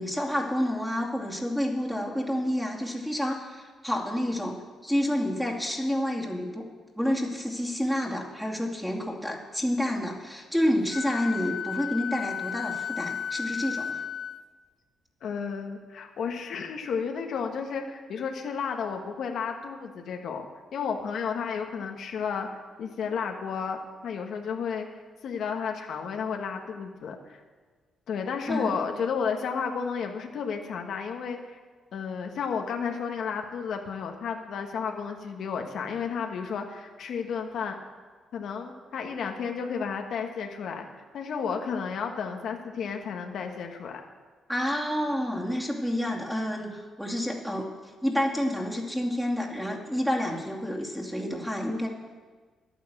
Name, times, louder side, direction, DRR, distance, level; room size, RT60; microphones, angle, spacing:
voice 1, 0.0-4.6 4.8-6.6 7.0-14.0 28.5-28.8 44.5-47.7 48.0-51.9, equal, ahead, -2 dB, 2.6 m, -29 dB
Wind instrument woodwind instrument, 10.9-14.4, left 7 dB, 50° left, 0.3 m, -33 dB
voice 2, 15.2-20.5 20.7-22.5 22.8-24.9 25.2-27.4 28.1-31.6 31.9-37.8 38.3-40.9 41.1-44.0, left 6 dB, 65° left, 3 dB, 1.4 m, -32 dB
11.5 x 9.5 x 7.8 m, 1.4 s
cardioid pair, 90°, 0 cm